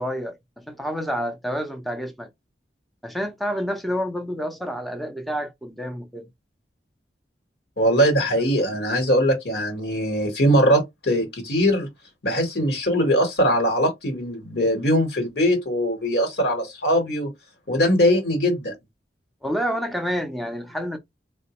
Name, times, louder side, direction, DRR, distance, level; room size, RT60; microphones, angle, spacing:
voice 1, 0.0-2.3 3.0-6.3 19.4-21.0, equal, ahead, 0.5 m, -29 dB
voice 2, 7.8-11.9 12.2-17.3 17.7-18.7, equal, 65° left, 1.2 m, -21 dB
3.9 x 2.1 x 2.9 m
head